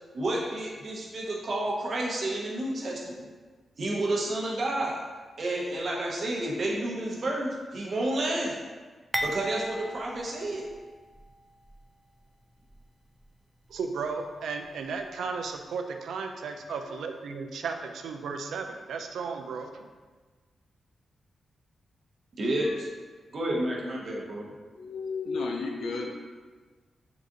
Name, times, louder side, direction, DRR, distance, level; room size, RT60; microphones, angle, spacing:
voice 1, 0.1-3.3 3.8-4.9 5.4-8.6 9.2-10.6 22.4-22.9 23.3-24.5, right 1 dB, 60° right, -2 dB, 0.8 m, -30 dB
sound 1, 9.1-11.3 11.7-11.8 12.7-12.8, equal, ahead, 0.4 m, -35 dB
voice 2, 13.7-19.9, right 5 dB, 85° right, 5 dB, 0.3 m, -35 dB
voice 3, 24.8-26.1, left 4 dB, 80° left, 1 dB, 0.4 m, -33 dB
3.8 x 2.4 x 3.8 m, 1.4 s
cardioid pair, 70°, 0 cm